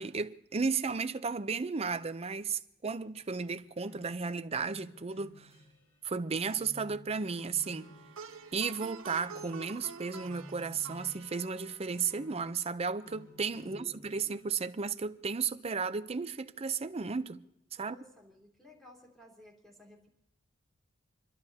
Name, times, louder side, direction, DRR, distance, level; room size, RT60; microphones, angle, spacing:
voice 1, 0.0-5.5 6.0-7.9 8.5-17.4 17.8-17.9, right 5 dB, 30° right, 0.6 m, -34 dB
sound 1, 3.2-6.0 6.4-8.8 9.3-14.5, left 1 dB, 80° left, 4.4 m, -55 dB
Plucked string instrument, 7.6-12.9, right 5 dB, 90° right, 0.9 m, -49 dB
voice 2, 13.6-14.2 17.8-20.1, left 1 dB, ahead, 3.6 m, -56 dB
28.5 x 12.0 x 2.8 m
head